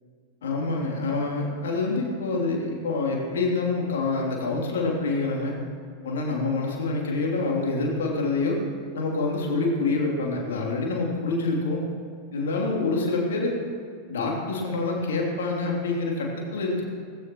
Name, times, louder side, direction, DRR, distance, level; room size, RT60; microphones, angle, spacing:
voice 1, 0.4-5.6 6.0-8.6 8.9-11.8 12.3-13.6 14.1-16.8, left 3 dB, 60° left, -1 dB, 3.1 m, -26 dB
18.0 x 16.0 x 3.1 m, 2.2 s
figure-of-eight pair, 90°, 0 cm